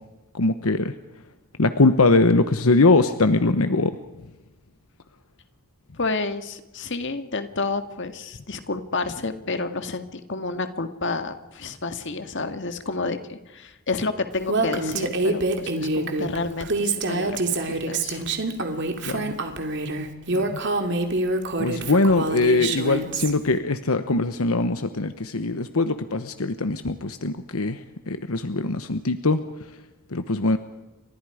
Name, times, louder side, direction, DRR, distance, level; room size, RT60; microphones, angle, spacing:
voice 1, 0.3-0.9 1.6-3.9 19.1-19.3 20.3-20.6 21.6-27.8 28.1-29.4 30.1-30.6, left 3 dB, 80° left, 9 dB, 1.1 m, -21 dB
voice 2, 6.0-18.2, left 3 dB, 55° left, 8 dB, 1.9 m, -30 dB
Female speech woman speaking, 14.5-23.3, right 2 dB, 55° right, 2.6 m, -26 dB
30.0 x 25.0 x 5.0 m, 1.1 s
head